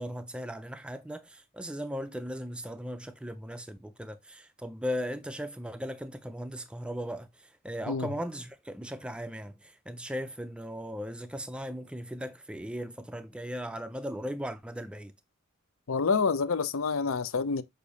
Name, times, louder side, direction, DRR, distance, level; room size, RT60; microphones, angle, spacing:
voice 1, 0.0-15.1, equal, 5° right, 0.4 m, -37 dB
voice 2, 15.9-17.6, left 5 dB, 70° left, 0.6 m, -27 dB
6.6 x 2.6 x 5.4 m
head